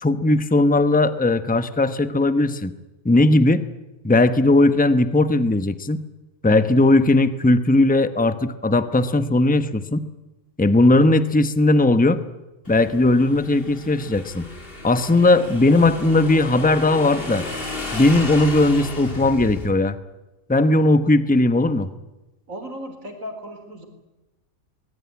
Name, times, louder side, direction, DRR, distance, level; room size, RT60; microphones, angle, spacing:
voice 1, 0.0-2.7 3.0-3.6 4.0-6.0 6.4-10.1 10.6-12.2 12.7-14.5 14.8-17.4 17.9-20.0 20.5-21.9, left 2 dB, 5° left, 11 dB, 0.9 m, -18 dB
Motorcycle / Engine, 12.7-19.7, left 2 dB, 40° left, 3.3 m, -33 dB
voice 2, 22.5-23.9, equal, 65° right, 6 dB, 4.6 m, -35 dB
23.0 x 21.0 x 9.7 m, 1.1 s
omnidirectional pair, 1.5 m